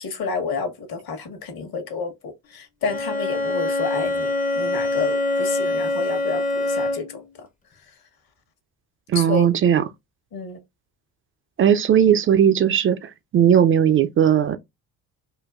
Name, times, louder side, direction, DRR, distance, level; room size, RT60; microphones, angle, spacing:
voice 1, 0.0-7.5 9.1-9.5 10.3-10.6, left 5 dB, 50° left, 1.2 m, -30 dB
Bowed string instrument, 2.8-7.2, left 2 dB, 20° left, 0.6 m, -24 dB
voice 2, 9.1-9.8 11.6-14.6, right 9 dB, 30° right, 0.3 m, -17 dB
3.7 x 2.2 x 2.3 m
hypercardioid pair, 60°, 45 cm